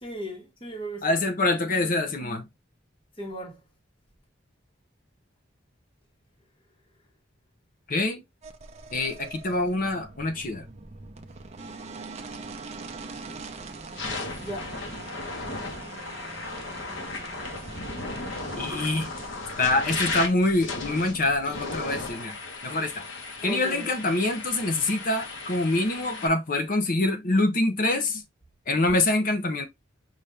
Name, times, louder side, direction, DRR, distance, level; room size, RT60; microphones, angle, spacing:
voice 1, 0.0-1.1 3.2-3.6 14.4-14.8 23.4-23.9, equal, 25° left, 1.3 m, -36 dB
voice 2, 1.0-2.5 7.9-8.2 8.9-10.6 18.6-19.1 19.6-22.4 22.6-23.0 23.4-28.2 28.7-29.6, left 2 dB, 45° left, 0.7 m, -25 dB
sound 1, 8.4-22.1, right 3 dB, 35° right, 0.6 m, -43 dB
sound 2, 13.1-13.3 13.8-26.3, left 3 dB, 70° left, 1.3 m, -35 dB
5.6 x 2.6 x 3.2 m
head